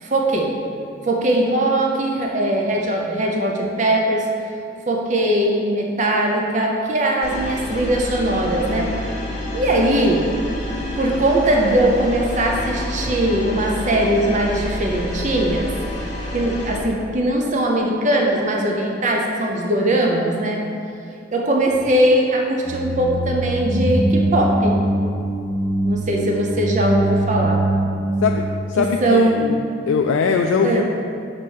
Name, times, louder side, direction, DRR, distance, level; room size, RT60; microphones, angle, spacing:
voice 1, 0.0-0.5 1.0-4.2 4.9-8.9 9.5-10.3 11.0-15.7 16.3-20.6 21.3-24.8 25.8-27.6 29.0-29.4 30.6-30.8, right 1 dB, 35° right, 0 dB, 0.7 m, -20 dB
sound 1, 7.2-16.8, left 1 dB, 35° left, 1.1 m, -28 dB
sound 2, 22.6-28.4, right 1 dB, 10° right, 1.1 m, -22 dB
voice 2, 28.2-29.6 29.9-30.8, left 5 dB, 75° left, 3 dB, 0.3 m, -21 dB
6.2 x 4.1 x 6.3 m, 2.6 s
head